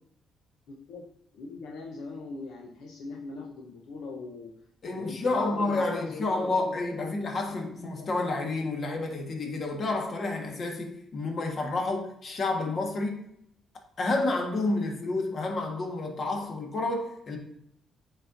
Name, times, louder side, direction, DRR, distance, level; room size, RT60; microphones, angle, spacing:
voice 1, 0.7-1.0 1.3-4.5 4.9-7.5 7.8-8.5, left 3 dB, 85° left, 0.8 m, -41 dB
voice 2, 4.8-13.2 14.0-17.4, left 2 dB, 50° left, 1.5 m, -30 dB
8.6 x 4.2 x 2.6 m
cardioid pair, 90°, 0 cm